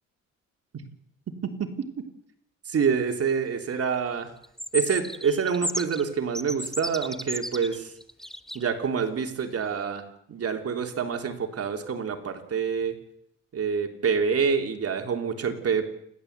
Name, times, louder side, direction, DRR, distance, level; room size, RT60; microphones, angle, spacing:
voice 1, 1.4-1.9 2.7-4.3 4.7-7.9 8.5-13.0 13.5-15.9, right 6 dB, 50° right, 5 dB, 3.3 m, -27 dB
sound 1, 4.4-6.0 6.3-8.6, equal, ahead, 1.3 m, -33 dB
28.5 x 12.0 x 8.2 m, 0.73 s
cardioid pair, 90°, 30 cm